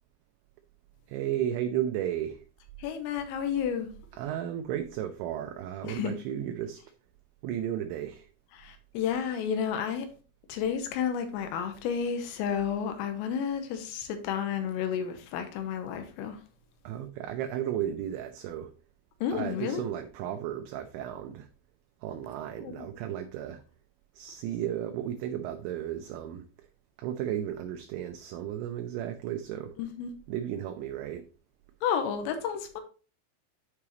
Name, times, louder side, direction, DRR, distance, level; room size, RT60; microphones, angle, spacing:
voice 1, 1.1-2.4 4.2-6.8 7.4-8.3 16.8-18.7 19.3-21.5 22.0-23.6 24.1-26.7 27.0-29.8 30.3-31.2, right 10 dB, 85° right, 2.6 m, -34 dB
voice 2, 2.8-3.9 5.8-6.2 8.6-10.1 10.5-16.4 19.2-19.8 22.6-22.9 29.8-30.1 31.8-32.8, left 7 dB, 85° left, 3.5 m, -31 dB
9.5 x 4.9 x 2.9 m
omnidirectional pair, 5.9 m